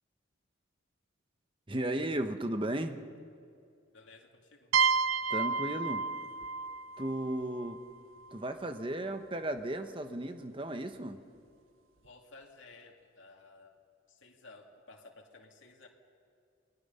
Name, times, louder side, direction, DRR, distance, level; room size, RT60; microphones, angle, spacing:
voice 1, 1.7-3.0 5.3-6.1 7.0-7.8 8.3-11.2, right 1 dB, 25° right, 7 dB, 1.0 m, -35 dB
voice 2, 3.9-4.7 12.0-13.8 14.1-15.9, left 3 dB, 70° left, 0 dB, 2.5 m, -55 dB
sound 1, 4.7-8.4, right 5 dB, 90° right, 0.5 m, -31 dB
29.0 x 20.0 x 5.6 m, 2.4 s
head